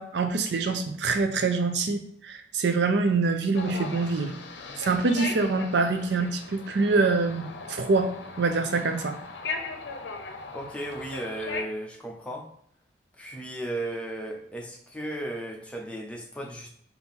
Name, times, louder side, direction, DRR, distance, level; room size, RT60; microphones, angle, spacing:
voice 1, 0.0-4.3 4.8-9.2, right 3 dB, 75° right, 7 dB, 0.5 m, -25 dB
sound 1, 3.5-11.6, left 4 dB, 80° left, 0.6 m, -38 dB
voice 2, 10.5-12.4 13.2-16.7, right 1 dB, 5° left, 0 dB, 0.7 m, -35 dB
4.3 x 2.7 x 3.6 m, 0.66 s
head